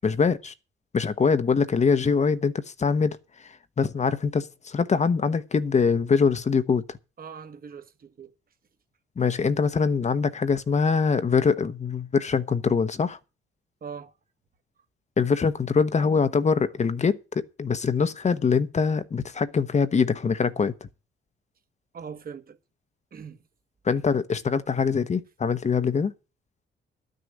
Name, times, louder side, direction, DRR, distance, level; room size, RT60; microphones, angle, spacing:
voice 1, 0.0-0.5 0.9-3.2 3.4-6.8 9.2-13.2 15.2-20.7 23.8-26.1, left 5 dB, 35° left, 1.0 m, -23 dB
voice 2, 7.2-8.3 13.8-14.1 21.9-22.6 23.1-23.4, right 6 dB, 50° right, 1.8 m, -41 dB
12.0 x 6.5 x 8.5 m
cardioid pair, 90°, 20 cm